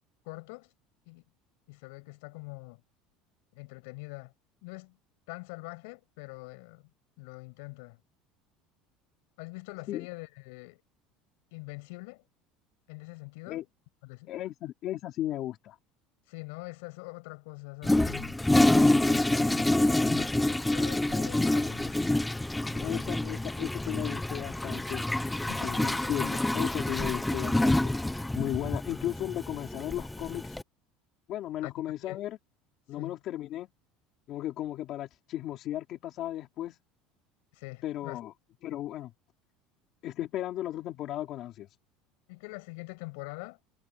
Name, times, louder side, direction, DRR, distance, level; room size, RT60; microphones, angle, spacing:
voice 1, 0.2-0.7 1.1-1.2 1.7-2.8 3.5-4.3 4.6-5.0 5.3-6.9 7.2-8.0 9.4-10.8 11.5-12.2 12.9-13.6 14.0-14.3 16.3-22.1 22.7-23.2 25.5-25.8 31.6-31.7 32.1-32.2 33.0-33.2 37.5-38.2 42.3-43.6, left 28 dB, 75° left, 6.6 m, -44 dB
voice 2, 14.3-15.8 22.8-25.1 25.6-27.9 28.3-30.6 31.3-32.4 32.9-33.7 34.3-36.8 37.8-38.3 38.6-39.1 40.0-41.7, left 13 dB, 40° left, 2.8 m, -35 dB
Toilet flush, 17.8-30.6, left 1 dB, 5° left, 0.4 m, -27 dB
cardioid pair, 170°, 0 cm